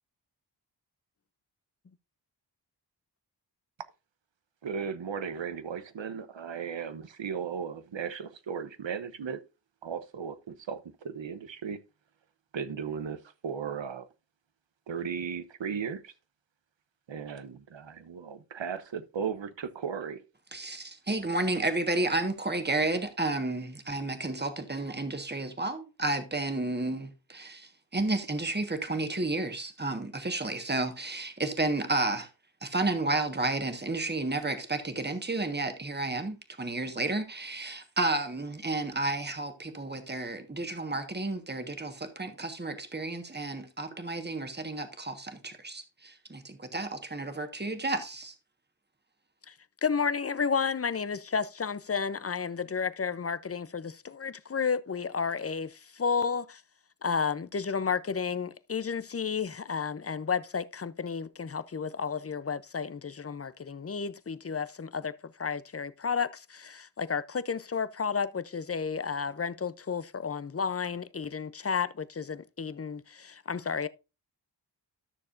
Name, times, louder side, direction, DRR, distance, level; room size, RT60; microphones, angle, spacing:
voice 1, 4.6-9.4 9.8-11.8 12.5-14.1 14.9-16.1 17.1-20.2, right 6 dB, 80° right, 1.0 m, -36 dB
voice 2, 20.5-32.3 32.6-48.3, right 2 dB, 25° right, 1.5 m, -32 dB
voice 3, 49.8-56.6 57.0-65.1 65.4-73.9, left 6 dB, 30° left, 0.6 m, -32 dB
13.0 x 6.6 x 2.6 m
wide cardioid pair, 65°, 44 cm